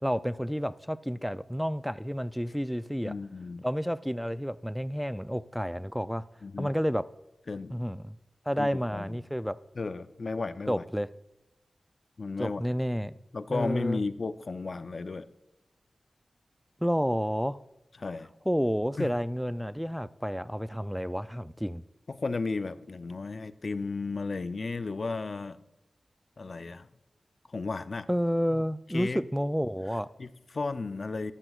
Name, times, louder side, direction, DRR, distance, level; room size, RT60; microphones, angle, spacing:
voice 1, 0.0-3.1 3.6-6.2 6.6-7.0 7.7-8.2 8.5-9.6 10.7-11.1 12.4-13.1 13.5-14.0 16.8-17.6 18.5-21.8 28.1-30.1, equal, ahead, 0.3 m, -30 dB
voice 2, 3.0-3.6 6.4-6.7 7.5-7.8 8.6-9.2 9.8-10.8 12.2-12.6 13.3-15.3 18.0-18.3 19.0-19.1 22.2-25.6 26.4-26.9 27.5-28.1 28.5-28.6 28.9-29.2 30.2-31.3, left 3 dB, 60° left, 0.5 m, -34 dB
14.0 x 12.0 x 2.3 m
cardioid pair, 55°, 0 cm